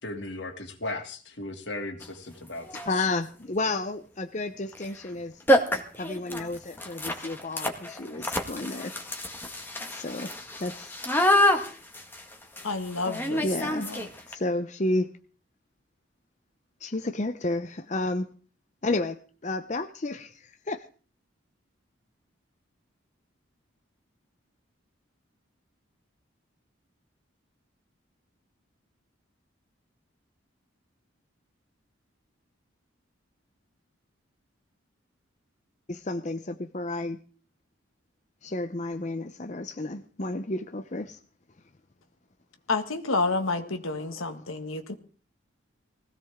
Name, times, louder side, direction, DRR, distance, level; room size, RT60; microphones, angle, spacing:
voice 1, 0.0-3.1, left 2 dB, 60° left, 4 dB, 2.7 m, -37 dB
sound 1, 2.0-2.1 2.7-3.0 4.7-4.9 5.1-5.2 5.5-14.3, left 1 dB, 10° left, 1.8 m, -27 dB
voice 2, 2.8-5.4 6.0-8.9 9.9-10.3 10.6-11.0 13.4-13.9 14.3-15.1 16.8-18.3 18.8-20.8 35.9-37.2 38.4-41.2 44.1-44.4, left 2 dB, 35° left, 8 dB, 0.7 m, -31 dB
voice 3, 12.6-13.4 13.8-14.1 42.7-44.9, left 3 dB, 90° left, 6 dB, 1.8 m, -29 dB
20.0 x 16.5 x 3.7 m, 0.40 s
head